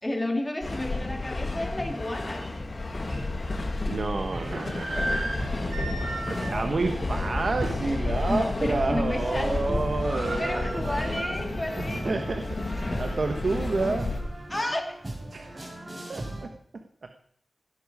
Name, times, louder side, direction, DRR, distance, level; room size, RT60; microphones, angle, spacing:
voice 1, 0.0-2.5 5.3-5.6 6.3-6.7 8.0-9.8 10.4-12.2 14.5-15.0, left 1 dB, 20° left, 2 dB, 2.9 m, -32 dB
sound 1, 0.6-14.2, left 2 dB, 45° left, 2.6 m, -31 dB
sound 2, 2.4-2.5 3.1-3.2 4.1-8.0 8.4-8.5 8.9-9.3 9.6-9.7 9.8-11.8 12.2-12.3 12.9-14.3, right 1 dB, 90° right, 6.5 m, -36 dB
sound 3, 3.8-16.4, right 1 dB, 30° right, 5.8 m, -40 dB
voice 2, 3.8-11.3 11.8-12.7 13.0-14.1 15.3-15.8 16.1-17.1, right 3 dB, 65° right, 6 dB, 1.3 m, -30 dB
18.0 x 12.5 x 4.9 m, 0.64 s
wide cardioid pair, 100°, 0 cm